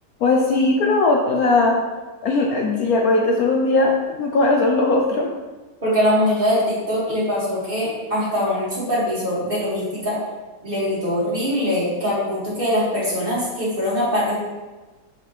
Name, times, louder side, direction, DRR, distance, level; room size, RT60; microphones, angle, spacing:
voice 1, 0.2-1.8 2.2-3.9 4.2-5.3, left 2 dB, 65° left, 0 dB, 1.1 m, -18 dB
voice 2, 5.8-10.2 10.6-14.4, equal, 30° right, -8 dB, 2.6 m, -22 dB
7.5 x 6.4 x 3.4 m, 1.2 s
omnidirectional pair, 1.9 m